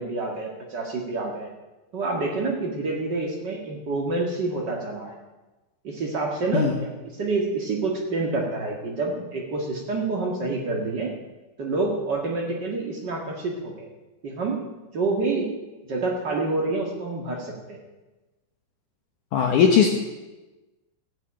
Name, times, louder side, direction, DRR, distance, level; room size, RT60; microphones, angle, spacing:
voice 1, 0.0-1.5 1.9-5.1 5.8-6.7 7.0-11.1 11.6-13.9 14.2-14.6 14.9-15.5 15.9-17.8, right 3 dB, 65° right, -1 dB, 1.0 m, -27 dB
voice 2, 19.3-19.9, left 7 dB, 70° left, 2 dB, 1.9 m, -18 dB
16.0 x 8.1 x 8.9 m, 1.1 s
omnidirectional pair, 5.1 m